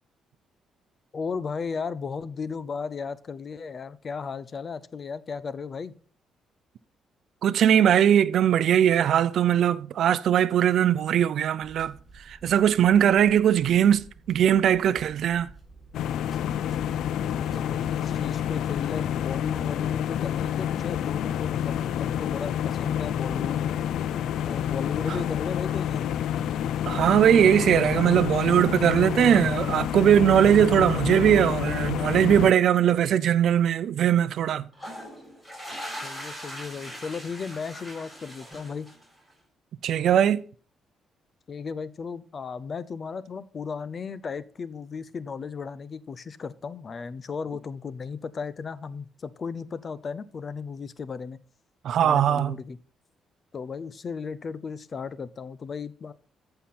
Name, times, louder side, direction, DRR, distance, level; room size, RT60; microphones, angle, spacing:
voice 1, 1.1-5.9 17.3-23.8 24.5-26.1 36.0-38.9 41.5-51.4 52.0-52.8 53.5-56.1, left 5 dB, 45° left, 0.6 m, -35 dB
voice 2, 7.4-11.9 12.4-15.5 26.9-34.7 39.8-40.4 51.8-52.6, right 9 dB, 70° right, 0.5 m, -20 dB
sound 1, 11.6-19.0, right 3 dB, 15° right, 6.3 m, -50 dB
sound 2, 15.9-32.5, left 10 dB, 80° left, 0.4 m, -28 dB
sound 3, 34.7-39.3, equal, 15° left, 6.2 m, -40 dB
14.0 x 5.8 x 4.2 m
cardioid pair, 90°, 0 cm